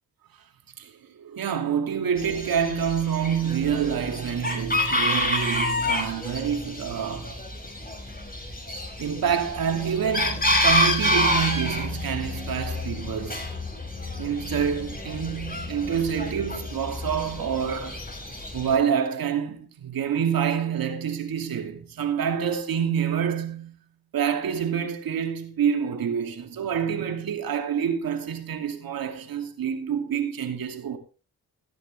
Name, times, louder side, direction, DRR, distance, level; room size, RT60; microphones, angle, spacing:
voice 1, 1.2-7.3 9.0-13.4 14.2-18.0 18.5-23.8 24.1-31.0, right 8 dB, 75° right, 2.6 m, -27 dB
Chicken rooster, 2.2-18.8, left 1 dB, 25° left, 6.3 m, -28 dB
17.0 x 10.5 x 3.3 m
cardioid pair, 60°, 35 cm